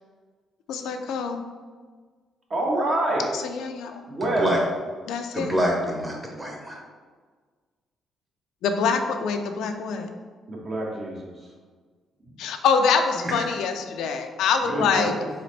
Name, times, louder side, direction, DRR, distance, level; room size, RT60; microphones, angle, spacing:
voice 1, 0.7-1.4 3.5-4.0 5.1-5.6 8.6-10.1 12.4-15.1, left 5 dB, 85° left, 6 dB, 0.4 m, -25 dB
voice 2, 2.5-3.3 4.1-4.6 10.5-11.4 14.7-15.3, right 1 dB, 45° right, -2 dB, 1.2 m, -26 dB
voice 3, 4.2-4.6 5.3-6.8 13.2-13.5, equal, 20° right, -1 dB, 1.2 m, -26 dB
4.0 x 3.9 x 3.2 m, 1.5 s
cardioid pair, 90°, 0 cm